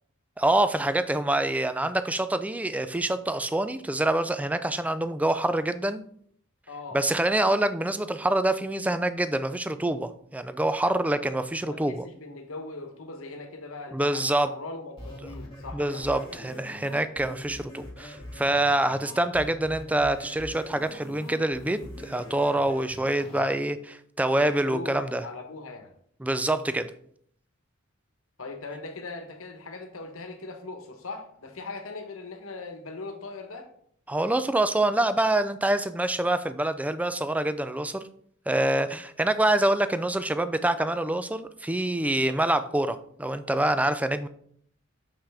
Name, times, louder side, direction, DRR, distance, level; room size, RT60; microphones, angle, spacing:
voice 1, 0.4-6.0 6.9-12.0 13.9-14.5 15.7-23.8 24.2-25.2 26.2-26.9 34.1-38.0 38.5-44.3, right 1 dB, 5° right, 11 dB, 0.3 m, -26 dB
voice 2, 6.7-7.0 11.6-16.6 23.3-23.6 24.3-25.9 28.4-33.7, left 3 dB, 70° left, 6 dB, 1.1 m, -40 dB
sound 1, 15.0-23.4, left 1 dB, 25° left, 2.0 m, -43 dB
6.7 x 5.7 x 3.4 m, 0.64 s
head